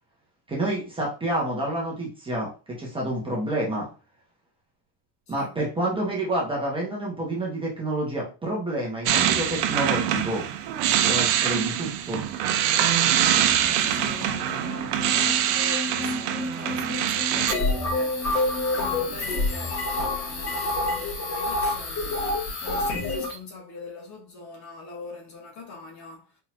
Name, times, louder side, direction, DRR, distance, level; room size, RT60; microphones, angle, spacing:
voice 1, 0.5-3.9 5.3-10.4 11.0-12.2, right 1 dB, 10° right, 1.0 m, -28 dB
sound 1, 9.1-17.5, right 10 dB, 70° right, 0.7 m, -24 dB
sound 2, 13.2-20.7, left 1 dB, 15° left, 0.4 m, -37 dB
voice 2, 13.7-26.4, left 3 dB, 35° left, 1.0 m, -42 dB
sound 3, 17.5-23.4, left 2 dB, 55° left, 2.5 m, -27 dB
4.4 x 3.9 x 2.6 m
cardioid pair, 170°, 49 cm